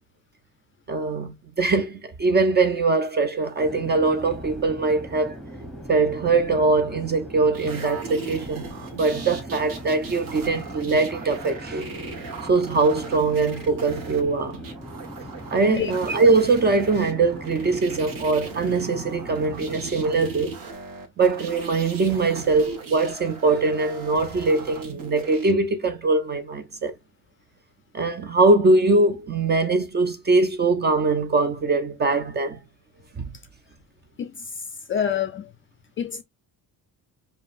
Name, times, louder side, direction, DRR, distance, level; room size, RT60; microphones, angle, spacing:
voice 1, 0.9-5.4 5.9-11.9 12.5-14.6 15.5-20.6 21.2-26.9 27.9-32.6 33.2-33.3, right 3 dB, 30° right, 0.4 m, -22 dB
Conversation / Chatter / Fixed-wing aircraft airplane, 3.6-20.3, equal, ahead, 0.9 m, -40 dB
sound 1, 7.5-25.5 26.9-27.0, right 4 dB, 65° right, 1.3 m, -38 dB
voice 2, 34.9-35.5 36.0-36.2, left 8 dB, 35° left, 0.4 m, -26 dB
5.1 x 2.6 x 2.4 m
cardioid pair, 150°, 36 cm